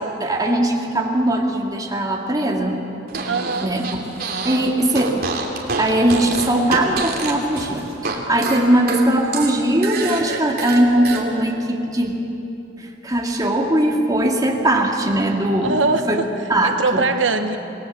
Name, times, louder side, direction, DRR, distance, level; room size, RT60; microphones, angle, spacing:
voice 1, 0.2-2.8 3.6-4.0 4.4-5.3 5.8-12.2 12.8-15.8 16.1-16.2 16.5-17.0, right 1 dB, 20° right, 0 dB, 2.5 m, -20 dB
Fart, 3.1-4.6 4.9-8.2 8.4-11.2, right 4 dB, 55° right, 3.0 m, -27 dB
voice 2, 3.2-3.7 15.6-16.3 16.6-17.6, right 3 dB, 85° right, 7 dB, 1.1 m, -22 dB
27.5 x 19.5 x 7.3 m, 2.9 s
head